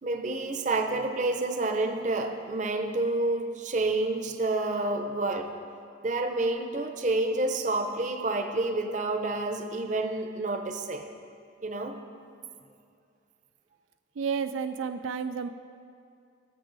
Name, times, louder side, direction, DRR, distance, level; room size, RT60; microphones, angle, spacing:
voice 1, 0.0-5.5 6.0-11.1 11.6-12.0, right 2 dB, 40° right, 6 dB, 0.7 m, -29 dB
voice 2, 14.2-15.5, right 6 dB, 85° right, 9 dB, 0.4 m, -31 dB
17.5 x 7.0 x 4.0 m, 2.4 s
head